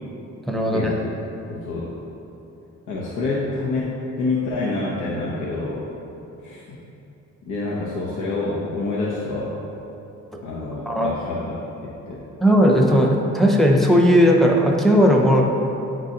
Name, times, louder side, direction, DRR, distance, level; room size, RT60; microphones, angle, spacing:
voice 1, 0.5-0.9 10.9-11.1 12.4-15.4, equal, ahead, 0 dB, 0.6 m, -16 dB
voice 2, 1.5-1.9 2.9-5.8 6.4-6.8 7.5-9.6 10.4-11.5 11.8-12.2, left 3 dB, 90° left, -6 dB, 0.8 m, -27 dB
8.9 x 3.8 x 2.8 m, 2.9 s
cardioid pair, 100°, 29 cm